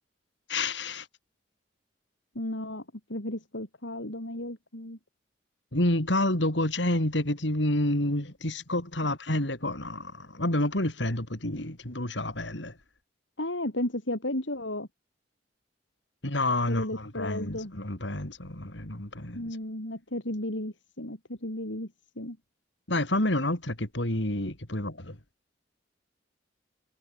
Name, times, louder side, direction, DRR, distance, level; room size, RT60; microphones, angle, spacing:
voice 1, 0.5-1.1 5.7-12.7 16.2-19.6 22.9-25.2, left 1 dB, 75° left, 4.7 m, -29 dB
voice 2, 2.4-2.8 3.1-5.0 13.4-14.9 16.7-17.7 19.3-21.9 22.2-22.4, left 1 dB, 90° left, 5.3 m, -34 dB
head